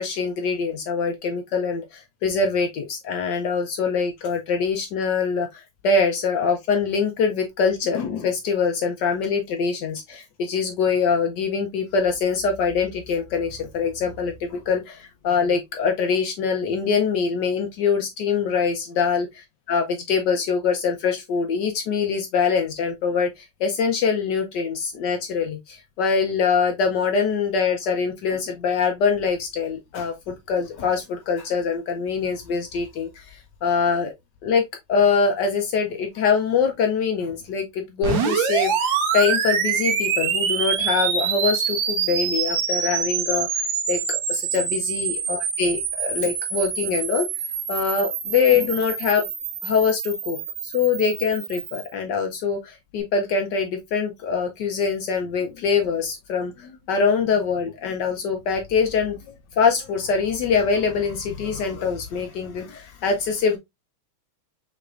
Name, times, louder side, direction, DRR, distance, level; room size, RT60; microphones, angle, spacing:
voice 1, 0.0-34.1 34.4-34.6 34.9-47.3 47.7-49.2 49.6-50.4 50.6-63.6, left 5 dB, 70° left, 1.1 m, -24 dB
sound 1, 38.0-51.9, right 6 dB, 65° right, 1.6 m, -26 dB
5.7 x 3.3 x 2.4 m
omnidirectional pair, 2.4 m